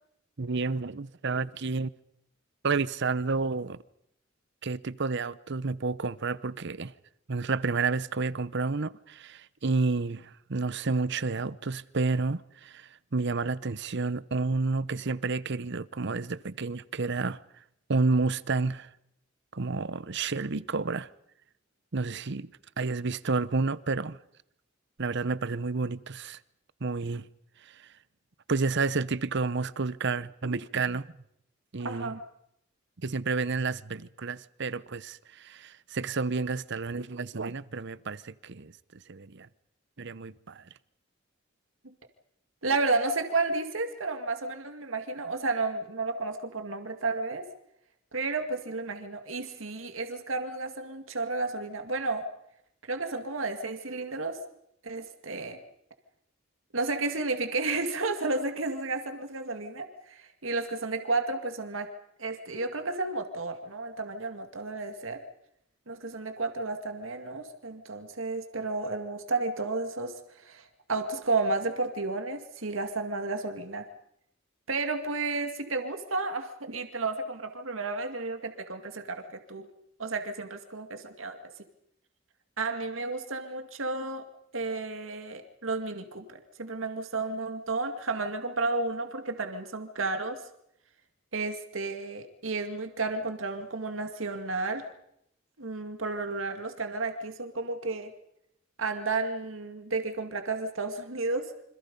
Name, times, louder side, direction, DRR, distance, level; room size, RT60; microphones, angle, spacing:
voice 1, 0.4-1.9 2.6-3.8 4.6-6.9 7.3-17.4 17.9-18.9 19.5-21.1 21.9-22.5 22.8-24.2 25.0-26.4 26.8-27.3 27.6-27.9 28.5-31.1 31.7-32.1 33.0-39.5 40.0-40.7, right 4 dB, 60° right, 0.8 m, -30 dB
voice 2, 31.8-32.2 42.6-47.5 48.1-52.3 52.8-54.4 54.8-55.6 56.7-61.9 62.2-65.2 65.9-73.9 74.7-79.7 80.0-81.4 82.6-84.2 84.5-90.4 91.3-94.9 95.6-98.1 98.8-101.5, right 3 dB, 85° right, 2.1 m, -32 dB
28.0 x 26.0 x 5.4 m
head